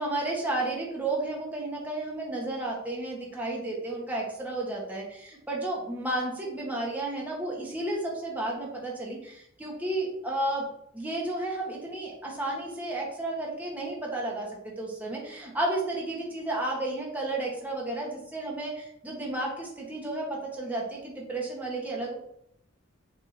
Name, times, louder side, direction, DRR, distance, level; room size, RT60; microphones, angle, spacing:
voice 1, 0.0-10.7 10.9-22.1, right 2 dB, 10° right, -3 dB, 1.3 m, -32 dB
7.0 x 3.6 x 4.3 m, 0.73 s
head